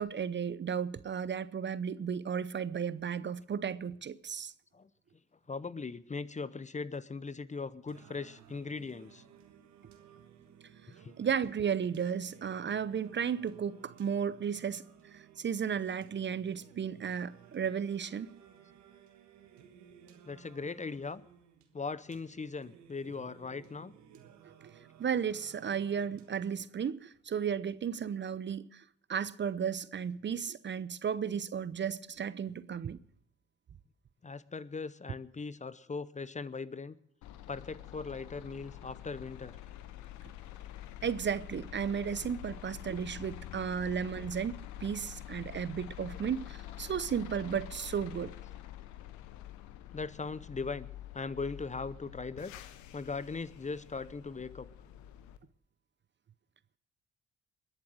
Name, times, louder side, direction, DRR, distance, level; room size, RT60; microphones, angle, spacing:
voice 1, 0.0-4.5 11.2-14.8 15.1-18.3 24.6-24.7 25.0-28.8 29.1-33.0 41.0-48.3, right 7 dB, 40° right, 0.7 m, -34 dB
voice 2, 5.5-9.2 11.0-11.1 20.3-21.2 21.7-23.9 34.2-36.9 37.5-39.5 46.0-46.1 49.9-50.9 51.1-52.5 52.9-54.7, left 4 dB, 25° left, 0.7 m, -39 dB
Singing, 7.9-26.9, right 8 dB, 75° right, 1.5 m, -57 dB
sound 1, 37.2-55.4, left 12 dB, 80° left, 1.0 m, -47 dB
21.0 x 7.5 x 6.2 m
hypercardioid pair, 45°, 29 cm